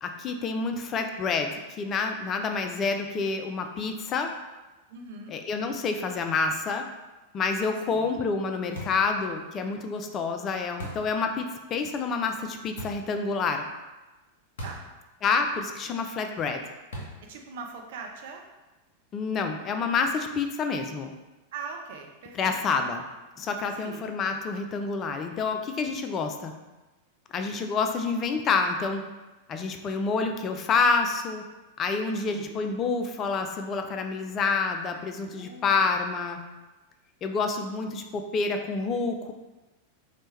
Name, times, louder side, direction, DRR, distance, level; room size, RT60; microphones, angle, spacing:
voice 1, 0.0-4.3 5.3-6.8 7.3-13.6 15.2-16.6 19.1-21.1 22.3-23.0 23.4-26.5 27.3-29.0 29.5-31.4 31.8-36.4 37.2-39.3, left 4 dB, 30° left, 5 dB, 0.3 m, -28 dB
voice 2, 4.9-5.4 7.8-8.2 14.6-14.8 17.2-18.4 21.5-22.8 23.7-24.1 32.3-32.7 35.3-35.9, right 4 dB, 55° right, 2 dB, 0.5 m, -42 dB
sound 1, 8.8-9.1 10.8-11.2 12.8-13.1 14.6-14.9 15.2-15.3 16.9-17.3, right 1 dB, 60° left, 0.8 m, -39 dB
4.1 x 2.1 x 3.2 m, 1.1 s
figure-of-eight pair, 90°, 0 cm